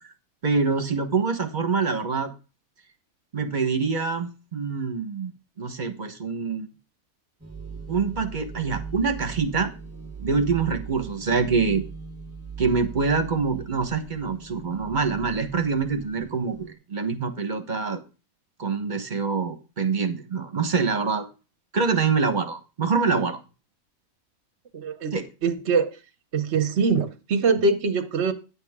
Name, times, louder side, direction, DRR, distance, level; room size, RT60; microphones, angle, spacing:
voice 1, 0.4-2.3 3.3-5.3 5.6-6.7 7.9-9.7 10.2-11.8 12.6-18.0 18.6-21.2 21.7-23.4 25.1-25.3, right 5 dB, 35° right, 1.3 m, -25 dB
sound 1, 7.4-16.7, right 5 dB, 15° right, 0.6 m, -39 dB
voice 2, 24.7-25.2 25.4-25.9 26.3-28.3, right 4 dB, 55° right, 1.1 m, -23 dB
10.0 x 7.6 x 3.6 m
omnidirectional pair, 1.4 m